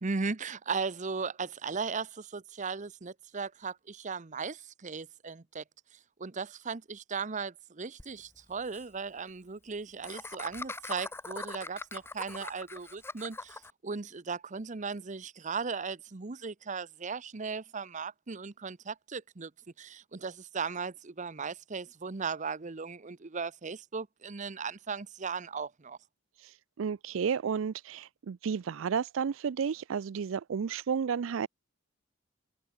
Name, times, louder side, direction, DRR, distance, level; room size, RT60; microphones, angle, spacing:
voice 1, 0.0-5.6 5.9-19.5 19.8-26.0, right 5 dB, 35° right, 0.7 m, -37 dB
Laughter, 8.0-8.1 8.4-8.5 8.7-8.8 10.0-13.7, left 3 dB, 10° left, 0.8 m, -41 dB
voice 2, 26.4-31.5, right 6 dB, 65° right, 0.4 m, -32 dB
head